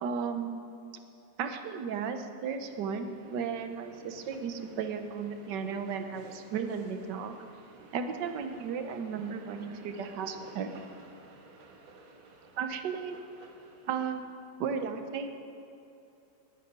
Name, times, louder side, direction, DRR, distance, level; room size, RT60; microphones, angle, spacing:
voice 1, 0.0-0.6 1.4-7.3 7.9-10.7 12.6-13.2 13.9-14.3 14.6-15.3, right 6 dB, 65° right, 7 dB, 1.5 m, -34 dB
sound 1, 2.7-14.2, right 3 dB, 85° right, 2.2 m, -54 dB
10.5 x 9.2 x 9.7 m, 2.8 s
omnidirectional pair, 2.2 m